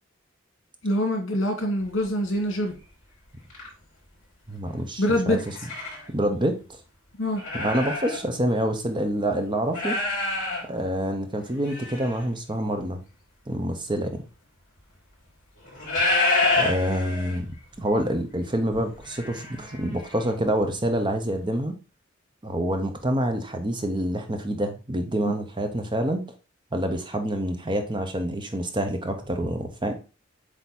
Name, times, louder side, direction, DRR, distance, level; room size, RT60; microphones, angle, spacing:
voice 1, 0.8-2.7 5.0-5.4 7.2-7.4, left 1 dB, 70° left, 3 dB, 2.1 m, -24 dB
sound 1, 1.9-2.0 2.7-2.8 3.4-3.7 5.3-6.1 6.6-6.7 7.3-8.2 8.6-8.7 9.7-10.6 11.4-12.2 13.9-14.0 15.6-17.5 17.9-18.0 18.3-20.3 20.7-20.8, left 2 dB, 45° left, 3.9 m, -28 dB
voice 2, 4.5-5.4 6.1-6.6 7.5-10.0 10.7-13.0 13.5-14.2 16.6-21.8 22.4-26.3 26.7-30.0, right 1 dB, 25° right, 5 dB, 0.9 m, -27 dB
8.1 x 3.0 x 4.2 m, 0.34 s
head